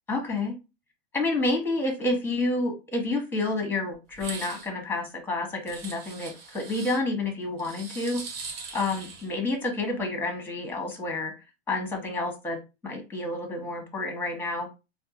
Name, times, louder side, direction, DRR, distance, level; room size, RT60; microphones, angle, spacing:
voice 1, 0.1-0.6 1.1-8.2 8.7-11.3 11.7-12.6 12.8-14.7, left 2 dB, 5° left, 3 dB, 1.4 m, -29 dB
sound 1, 4.1-4.7 5.7-7.0 7.6-9.3, right 4 dB, 65° right, 1.3 m, -40 dB
4.3 x 2.3 x 2.9 m, 0.27 s
hypercardioid pair, 95°, 31 cm